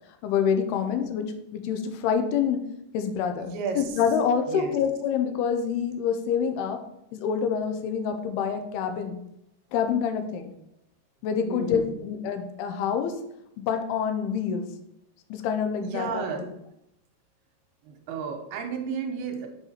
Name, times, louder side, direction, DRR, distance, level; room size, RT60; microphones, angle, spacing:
voice 1, 0.2-1.3 1.5-2.7 2.9-3.5 3.8-6.8 7.1-9.2 9.7-10.5 11.2-13.2 13.7-14.7 15.3-16.4, left 7 dB, 85° left, 6 dB, 2.6 m, -26 dB
voice 2, 3.4-4.0 4.5-4.7 11.5-11.9 15.8-16.5 17.9-19.5, right 5 dB, 80° right, 4 dB, 2.7 m, -33 dB
6.6 x 4.9 x 4.3 m, 0.81 s
omnidirectional pair, 4.6 m